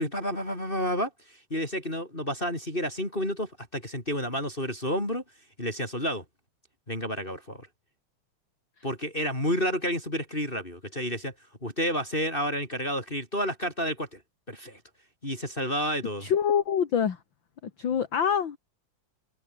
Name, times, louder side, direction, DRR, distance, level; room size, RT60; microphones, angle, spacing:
voice 1, 0.0-5.2 5.6-6.2 6.9-7.7 8.8-11.3 11.6-14.2 14.5-14.8 15.2-16.3, equal, 15° left, 5.4 m, -30 dB
voice 2, 16.2-17.2 17.6-18.6, left 8 dB, 45° left, 2.2 m, -25 dB
omnidirectional pair, 3.4 m